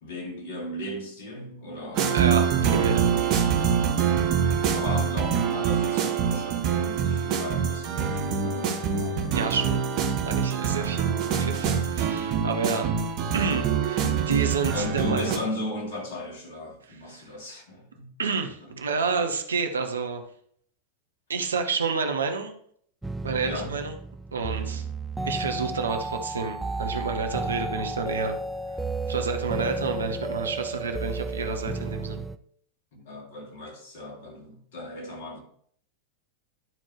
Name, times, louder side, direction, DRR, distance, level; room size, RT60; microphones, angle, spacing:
voice 1, 0.0-2.6 3.0-4.0 4.7-9.4 14.7-18.1 18.7-18.8 23.4-23.8 24.6-24.9 32.9-35.4, left 1 dB, 50° left, 2.3 m, -37 dB
sound 1, 1.9-15.4, right 7 dB, 40° right, 1.2 m, -25 dB
voice 2, 2.1-3.1 9.3-9.8 10.3-11.1 11.3-12.9 13.3-15.4 17.1-17.3 18.2-20.2 21.3-22.5 23.2-23.9 24.3-24.8 25.2-28.4 29.1-32.3, right 5 dB, 70° right, 0.9 m, -29 dB
sound 2, 23.0-32.4, right 2 dB, 5° right, 0.3 m, -33 dB
12.0 x 4.4 x 3.0 m
figure-of-eight pair, 90°, 0 cm